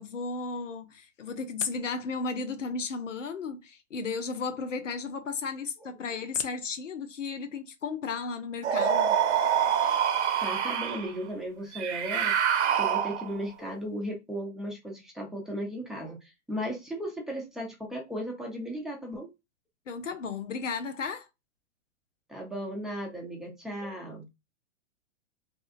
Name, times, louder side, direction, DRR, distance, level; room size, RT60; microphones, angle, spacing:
voice 1, 0.0-9.1 19.9-21.3, left 4 dB, 90° left, 0.6 m, -34 dB
sound 1, 8.6-11.1 11.7-13.4, right 8 dB, 65° right, 0.7 m, -26 dB
voice 2, 10.1-12.4 12.7-19.3 22.3-24.3, equal, ahead, 0.8 m, -36 dB
2.7 x 2.4 x 2.4 m
hypercardioid pair, 115°, 36 cm